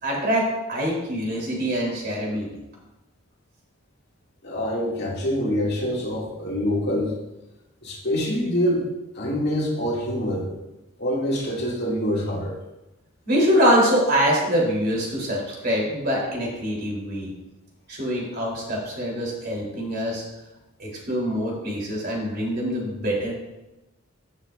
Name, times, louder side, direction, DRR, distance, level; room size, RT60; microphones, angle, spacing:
voice 1, 0.0-2.6 13.3-17.3 17.9-20.2 20.8-23.3, equal, 45° right, -3 dB, 3.6 m, -24 dB
voice 2, 4.4-7.2 7.8-8.8 9.1-10.5 11.0-12.5, equal, 50° left, -4 dB, 2.4 m, -25 dB
15.5 x 7.2 x 2.6 m, 0.97 s
head